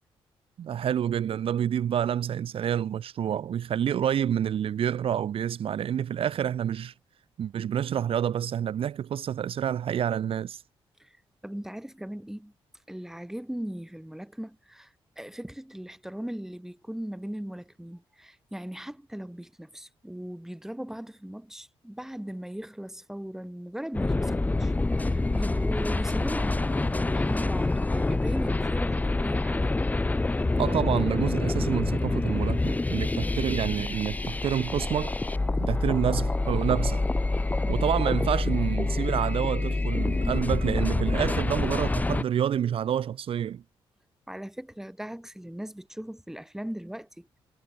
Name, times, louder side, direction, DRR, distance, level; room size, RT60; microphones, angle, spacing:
voice 1, 0.6-6.9 7.4-10.6 30.6-35.1 35.6-37.0 37.7-43.6, right 9 dB, 70° right, 1.4 m, -28 dB
voice 2, 11.4-12.5 12.9-29.7 44.3-47.4, right 1 dB, 5° right, 5.5 m, -38 dB
sound 1, 23.9-42.2, left 2 dB, 15° left, 0.9 m, -27 dB
cardioid pair, 100°, 10 cm